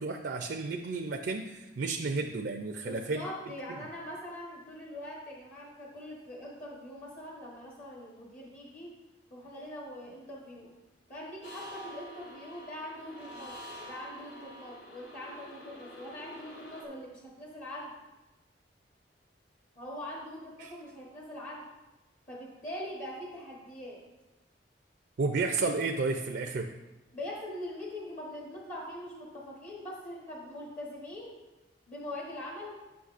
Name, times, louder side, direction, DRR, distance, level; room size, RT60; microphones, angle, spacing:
voice 1, 0.0-3.2 3.7-3.8 20.6-20.7 25.2-26.7, right 3 dB, 70° right, 4 dB, 0.4 m, -32 dB
voice 2, 2.8-8.9 9.3-10.7 11.1-17.9 19.7-21.7 22.3-24.0 27.1-31.4 31.9-32.8, left 1 dB, 45° left, -3 dB, 1.1 m, -42 dB
sound 1, 11.4-16.8, equal, 85° left, 1.3 m, -47 dB
9.5 x 5.8 x 2.5 m, 1.1 s
head